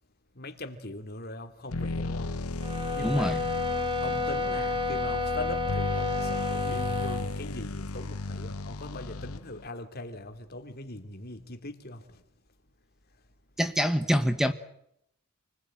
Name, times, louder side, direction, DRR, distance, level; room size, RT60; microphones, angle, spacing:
voice 1, 0.3-2.3 2.9-3.4 4.0-12.2, left 2 dB, 45° left, 2.9 m, -40 dB
sound 1, 1.7-9.7, left 2 dB, 85° left, 1.1 m, -35 dB
sound 2, 2.6-7.3, left 3 dB, 25° right, 3.6 m, -30 dB
voice 2, 3.0-3.4 13.6-14.5, equal, ahead, 1.1 m, -25 dB
29.0 x 20.5 x 9.0 m
head